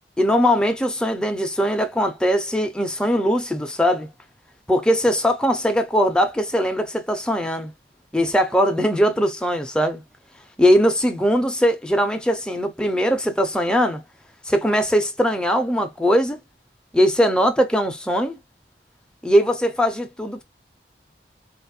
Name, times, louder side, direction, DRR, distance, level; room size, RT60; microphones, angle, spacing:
voice 1, 0.2-4.1 4.7-7.7 8.1-10.0 10.6-14.0 14.4-16.4 16.9-18.4 19.2-20.4, equal, 5° left, 0.5 m, -20 dB
4.0 x 2.4 x 2.6 m
head